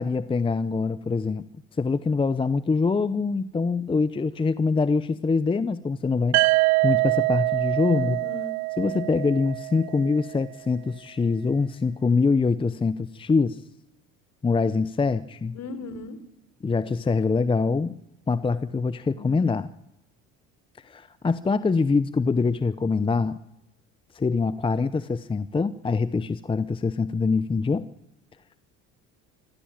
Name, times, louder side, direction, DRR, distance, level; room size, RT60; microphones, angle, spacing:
voice 1, 0.0-1.5 1.8-6.4 6.8-8.2 8.8-13.6 14.4-15.6 16.6-18.0 18.3-19.7 20.8-23.4 24.1-27.9, left 4 dB, 15° left, 15 dB, 0.7 m, -24 dB
sound 1, 6.3-10.2, right 27 dB, 90° right, 0.9 m, -24 dB
voice 2, 7.9-8.5 15.5-16.2 19.1-19.4, left 3 dB, 50° left, 12 dB, 3.9 m, -37 dB
25.0 x 15.5 x 8.9 m, 0.85 s
supercardioid pair, 100°, 33 cm